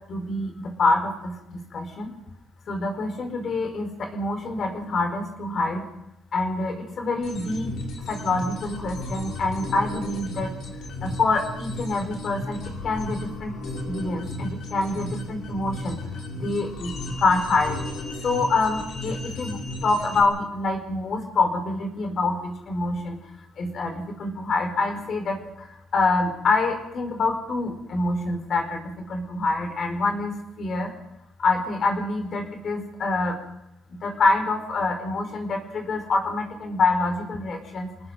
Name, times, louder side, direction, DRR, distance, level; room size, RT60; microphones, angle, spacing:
voice 1, 0.1-2.1 2.7-5.8 6.3-7.7 8.1-10.5 11.0-12.6 12.8-13.5 13.8-16.0 16.4-16.9 17.2-17.8 18.2-23.2 23.6-25.4 25.9-30.9 31.4-33.3 34.0-37.9, left 3 dB, 55° left, 5 dB, 4.8 m, -26 dB
sound 1, 7.2-20.2, left 1 dB, 80° left, 6.3 m, -34 dB
28.0 x 20.0 x 5.2 m, 0.87 s
cardioid pair, 90°, 0 cm